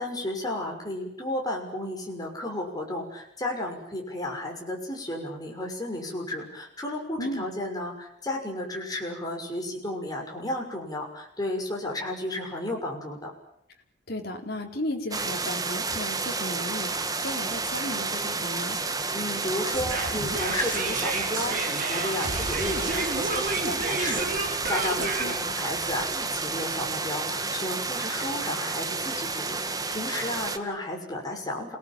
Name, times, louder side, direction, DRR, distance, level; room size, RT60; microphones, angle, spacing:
voice 1, 0.0-13.3 19.1-31.8, left 1 dB, 20° left, 0 dB, 6.4 m, -33 dB
voice 2, 14.1-18.8 25.0-25.3, left 1 dB, 55° left, 2 dB, 4.1 m, -35 dB
sound 1, 15.1-30.6, right 3 dB, 20° right, 1.7 m, -30 dB
sound 2, 19.7-26.9, right 3 dB, 45° right, 5.0 m, -31 dB
28.0 x 19.5 x 9.1 m, 0.74 s
head